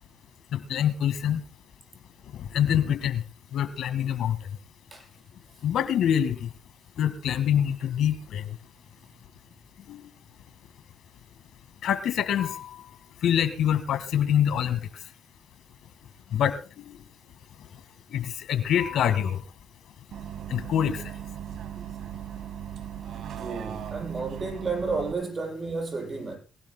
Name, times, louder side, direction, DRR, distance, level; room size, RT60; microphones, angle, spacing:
voice 1, 0.5-1.4 2.4-3.2 3.5-4.4 5.6-6.5 7.0-8.4 9.9-10.0 11.8-12.7 13.2-14.8 16.3-16.6 16.8-17.0 18.1-19.4 20.5-21.0, left 9 dB, 75° left, 1.8 m, -25 dB
Bus, 20.1-25.1, right 10 dB, 70° right, 1.8 m, -38 dB
voice 2, 23.4-26.4, right 4 dB, 30° right, 7.6 m, -32 dB
23.0 x 17.0 x 2.2 m
cardioid pair, 90°, 0 cm